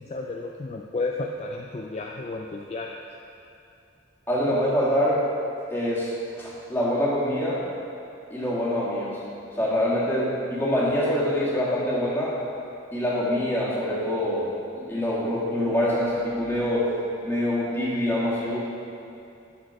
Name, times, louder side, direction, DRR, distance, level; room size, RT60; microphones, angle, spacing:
voice 1, 0.0-2.9, left 3 dB, 35° left, 0 dB, 0.4 m, -32 dB
voice 2, 4.3-5.2 5.7-6.1 6.4-7.6 8.3-9.2 9.5-12.3 12.9-14.5 14.8-16.9 17.2-18.6, left 1 dB, 10° left, -7 dB, 1.7 m, -25 dB
12.0 x 4.4 x 4.7 m, 2.6 s
head